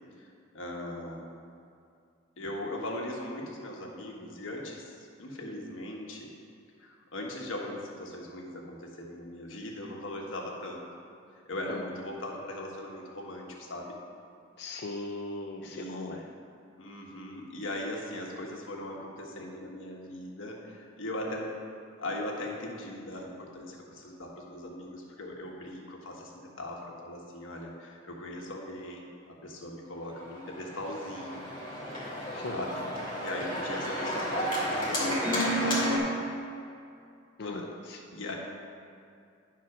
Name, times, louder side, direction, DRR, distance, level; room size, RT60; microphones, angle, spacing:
voice 1, 0.2-1.4 2.4-6.3 6.8-10.8 11.4-13.9 15.6-16.1 16.8-21.5 22.0-31.4 32.5-32.8 33.2-36.1 37.4-37.7 38.1-38.4, left 1 dB, 85° left, -1 dB, 1.4 m, -39 dB
voice 2, 14.6-16.2 32.3-32.6 37.4-37.6 37.9-38.0, left 2 dB, 55° left, 0 dB, 0.5 m, -38 dB
Organ, 30.2-36.0, equal, 25° left, 2.4 m, -31 dB
10.5 x 4.4 x 5.9 m, 2.4 s
head